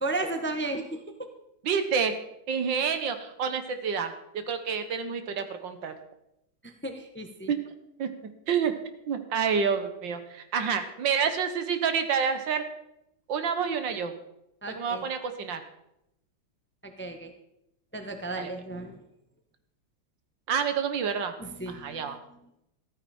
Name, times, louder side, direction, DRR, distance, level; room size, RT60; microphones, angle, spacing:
voice 1, 0.0-1.0 6.6-7.5 14.6-15.0 16.8-17.3 17.9-19.0 21.4-22.2, right 2 dB, 10° left, 6 dB, 0.9 m, -34 dB
voice 2, 1.6-2.2 2.5-4.1 4.5-6.0 7.5-7.6 8.0-8.1 8.5-8.7 9.1-12.6 13.3-14.2 14.7-15.6 18.4-18.5 20.5-21.4 21.7-22.2, right 6 dB, 70° right, 9 dB, 1.9 m, -28 dB
14.0 x 14.0 x 4.3 m, 0.83 s
omnidirectional pair, 2.1 m